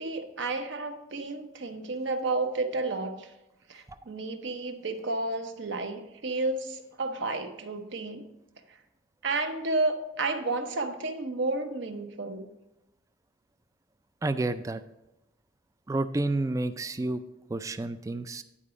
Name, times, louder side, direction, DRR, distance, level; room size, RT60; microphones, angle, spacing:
voice 1, 0.0-3.3 3.7-8.2 9.2-12.4, right 2 dB, 60° right, 6 dB, 0.8 m, -31 dB
voice 2, 14.2-14.8 15.9-17.2 17.5-18.4, right 2 dB, 15° right, 11 dB, 0.3 m, -30 dB
10.0 x 4.8 x 5.0 m, 0.91 s
head